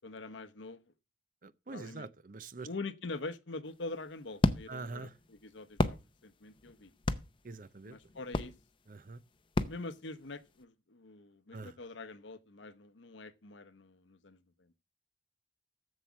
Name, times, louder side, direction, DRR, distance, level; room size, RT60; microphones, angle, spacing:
voice 1, 0.0-0.8 1.7-2.1 2.6-6.9 7.9-8.5 9.7-14.7, left 3 dB, 80° left, 0.9 m, -44 dB
voice 2, 1.4-2.7 4.7-5.2 7.4-8.0 8.9-9.2 11.5-11.8, right 3 dB, 45° right, 0.6 m, -44 dB
sound 1, 3.7-10.6, left 2 dB, 25° left, 0.6 m, -35 dB
7.7 x 7.4 x 7.2 m
head